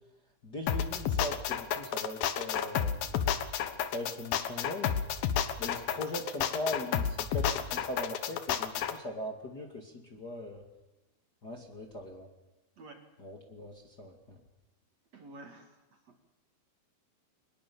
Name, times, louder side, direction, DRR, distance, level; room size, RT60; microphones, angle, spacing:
voice 1, 0.4-3.3 3.9-5.0 5.6-10.6 11.4-12.3 13.2-14.4, left 1 dB, 30° left, 2 dB, 2.2 m, -40 dB
sound 1, 0.7-8.9, left 9 dB, 65° left, 2.7 m, -31 dB
voice 2, 12.8-13.1 15.1-16.2, right 2 dB, 50° right, 5 dB, 2.6 m, -51 dB
24.0 x 21.0 x 7.1 m, 1.0 s
omnidirectional pair, 4.7 m